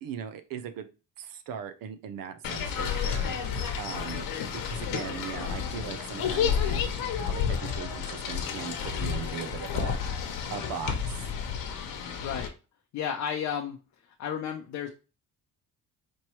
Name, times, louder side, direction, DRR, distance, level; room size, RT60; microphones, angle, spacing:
voice 1, 0.0-0.9 1.2-3.4 3.8-4.3 4.5-10.2 10.5-11.3, right 7 dB, 70° right, 9 dB, 0.6 m, -39 dB
sound 1, 2.4-12.5, left 7 dB, 70° left, 1.0 m, -31 dB
voice 2, 12.9-13.8 14.2-14.9, left 8 dB, 50° left, 3 dB, 0.6 m, -32 dB
4.4 x 3.1 x 3.0 m, 0.31 s
cardioid pair, 155°, 36 cm